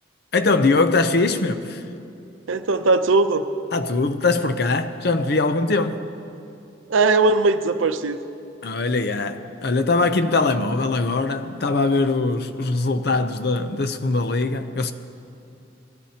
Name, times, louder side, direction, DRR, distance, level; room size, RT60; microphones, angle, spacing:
voice 1, 0.3-1.8 3.7-6.0 8.6-14.9, left 3 dB, 55° left, 0.6 m, -21 dB
voice 2, 2.5-3.4 6.9-8.2, right 3 dB, 85° right, 0.6 m, -19 dB
21.0 x 13.5 x 2.9 m
head